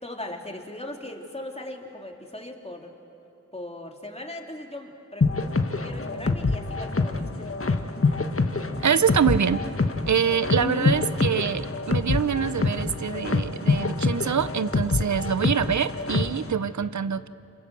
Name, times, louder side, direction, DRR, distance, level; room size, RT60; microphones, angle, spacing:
voice 1, 0.0-2.9 3.5-5.3 5.8-8.1 10.6-10.9, left 1 dB, 20° left, 1 dB, 3.4 m, -38 dB
sound 1, 5.2-16.5, left 3 dB, 50° left, 1.5 m, -26 dB
voice 2, 8.8-9.6 10.1-17.3, right 7 dB, 75° right, 15 dB, 0.8 m, -25 dB
28.5 x 26.5 x 7.8 m, 3.0 s
cardioid pair, 45°, 29 cm